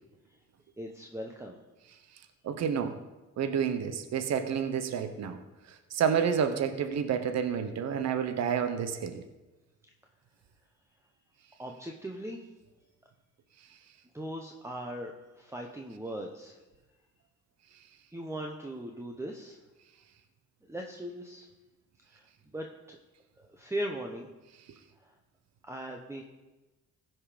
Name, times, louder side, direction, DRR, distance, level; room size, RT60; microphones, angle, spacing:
voice 1, 0.8-1.6 11.6-12.4 14.1-16.6 18.1-19.6 20.7-21.5 22.1-22.2 22.5-23.0 23.4-24.3 25.7-26.2, right 1 dB, 10° right, 2 dB, 1.0 m, -39 dB
voice 2, 2.4-3.0 3.4-5.4 5.7-9.2, right 7 dB, 60° right, 9 dB, 0.9 m, -29 dB
15.5 x 5.7 x 5.1 m, 1.1 s
cardioid pair, 90°, 30 cm